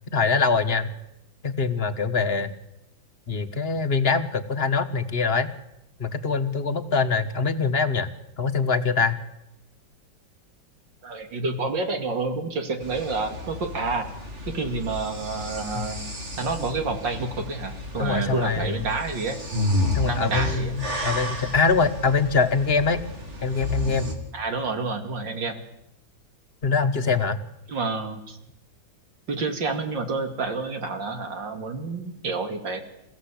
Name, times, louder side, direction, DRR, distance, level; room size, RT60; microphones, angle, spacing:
voice 1, 0.1-0.9 1.4-2.5 3.3-5.5 6.0-8.1 8.4-9.2 15.7-15.9 18.0-18.9 19.9-23.0 23.4-24.1 26.6-27.4, left 4 dB, 35° left, 9 dB, 1.4 m, -23 dB
voice 2, 11.0-14.1 14.5-16.1 16.4-19.4 20.0-20.7 24.3-25.6 27.7-28.4 29.3-32.8, right 3 dB, 65° right, 6 dB, 3.1 m, -29 dB
sound 1, 12.8-24.1, left 1 dB, 35° right, 3.4 m, -31 dB
27.5 x 15.5 x 8.5 m, 0.84 s
omnidirectional pair, 2.1 m